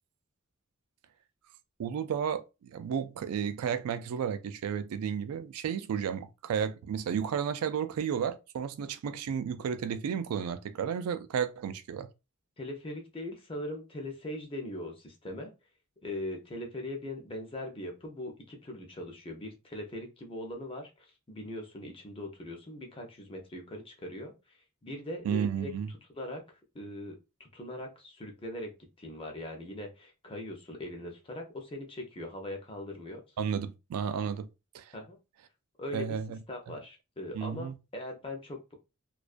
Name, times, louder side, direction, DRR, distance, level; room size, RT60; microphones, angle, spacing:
voice 1, 1.8-12.1 25.2-25.9 33.4-34.5 34.7-34.9 35.9-36.4 36.7-36.8 37.3-37.8, right 7 dB, 85° right, 0.3 m, -32 dB
voice 2, 12.6-15.5 16.0-25.7 26.2-26.4 26.7-33.2 34.9-35.2 35.8-36.2 36.5-38.7, left 1 dB, 25° left, 0.5 m, -41 dB
2.3 x 2.2 x 2.4 m
head